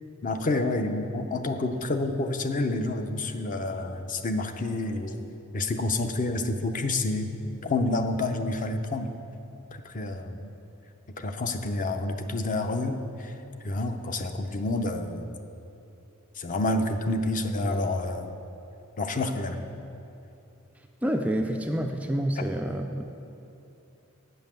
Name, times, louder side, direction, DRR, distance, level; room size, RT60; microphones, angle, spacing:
voice 1, 0.2-5.2 5.5-7.3 7.6-9.1 9.9-10.5 11.2-13.3 13.6-15.3 16.4-18.3 19.0-19.6 22.4-22.5, left 2 dB, 40° left, 7 dB, 0.6 m, -28 dB
voice 2, 21.0-23.1, right 1 dB, 5° right, 4 dB, 0.3 m, -28 dB
8.3 x 5.5 x 7.3 m, 2.8 s
head